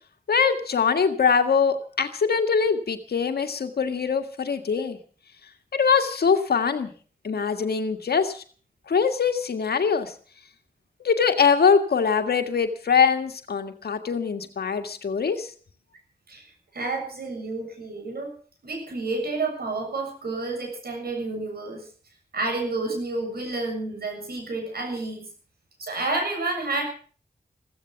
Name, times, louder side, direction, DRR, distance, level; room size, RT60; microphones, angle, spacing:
voice 1, 0.3-5.0 5.7-6.9 7.2-8.4 8.9-10.1 11.0-15.5, left 6 dB, 80° left, 7 dB, 1.8 m, -23 dB
voice 2, 16.7-18.3 18.6-21.9 22.3-25.3 25.8-26.8, right 3 dB, 75° right, 3 dB, 7.2 m, -30 dB
15.5 x 15.0 x 5.9 m, 0.43 s
cardioid pair, 40°, 16 cm